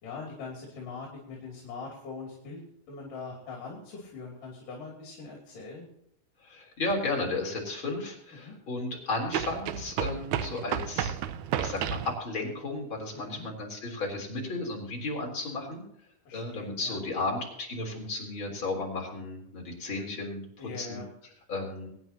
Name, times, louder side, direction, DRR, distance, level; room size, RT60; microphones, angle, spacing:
voice 1, 0.0-2.6 2.9-5.9 8.4-8.5 13.1-13.5 16.3-17.0 20.6-21.1, left 4 dB, 70° left, -1 dB, 4.4 m, -42 dB
voice 2, 6.4-11.2 11.6-15.8 16.3-21.0 21.5-21.9, left 2 dB, 35° left, 0 dB, 4.1 m, -34 dB
sound 1, 6.9-7.0 9.3-12.1, right 9 dB, 75° right, 1.9 m, -32 dB
23.5 x 9.7 x 2.8 m, 0.75 s
omnidirectional pair, 4.0 m